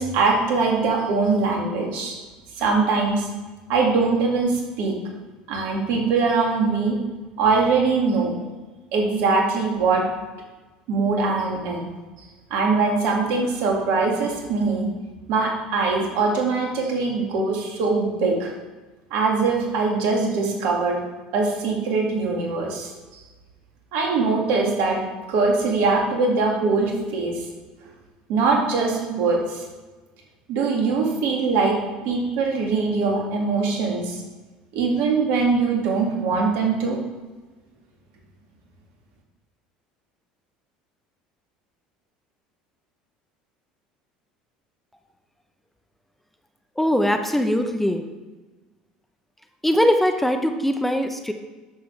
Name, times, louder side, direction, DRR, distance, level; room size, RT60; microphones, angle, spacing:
voice 1, 0.0-2.1 2.6-3.3 3.7-4.9 5.5-7.0 7.4-8.3 8.9-10.1 10.9-11.9 12.5-14.9 15.3-18.5 19.1-21.0 21.3-23.2 23.9-25.0 25.3-27.4 28.3-29.6 30.5-34.2 34.7-37.0, right 4 dB, 65° right, 0 dB, 2.1 m, -22 dB
voice 2, 46.8-48.0 49.6-51.3, equal, 5° left, 6 dB, 0.8 m, -21 dB
10.0 x 6.7 x 3.3 m, 1.2 s
hypercardioid pair, 70°, 4 cm